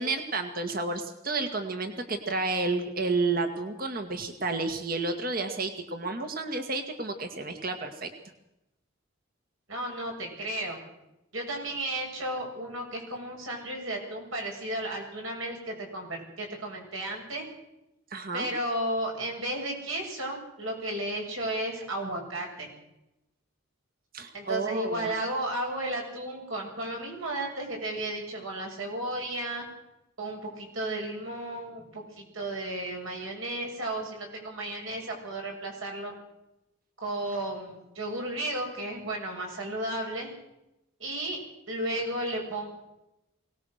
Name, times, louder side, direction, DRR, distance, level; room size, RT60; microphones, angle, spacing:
voice 1, 0.0-8.1 18.1-18.5 24.1-25.1, right 3 dB, 45° right, 6 dB, 1.9 m, -31 dB
voice 2, 9.7-10.8 11.3-17.5 18.3-22.7 24.3-29.7 30.2-36.1 37.0-40.3 41.0-41.4 41.7-42.7, right 1 dB, 75° right, 1 dB, 7.7 m, -33 dB
23.0 x 19.0 x 6.6 m, 0.90 s
head